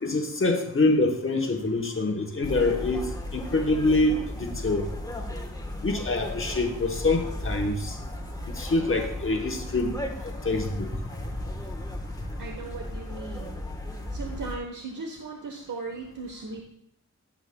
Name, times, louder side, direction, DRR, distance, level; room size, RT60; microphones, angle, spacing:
voice 1, 0.0-3.1 3.3-4.9 5.8-8.0 8.5-9.9 10.4-10.9, left 2 dB, 40° left, 3 dB, 1.0 m, -25 dB
sound 1, 2.4-14.6, left 1 dB, 10° left, 1.1 m, -35 dB
voice 2, 12.4-13.6 14.1-16.6, right 3 dB, 80° right, 2 dB, 0.9 m, -37 dB
13.0 x 7.1 x 2.2 m, 0.73 s
wide cardioid pair, 95°, 31 cm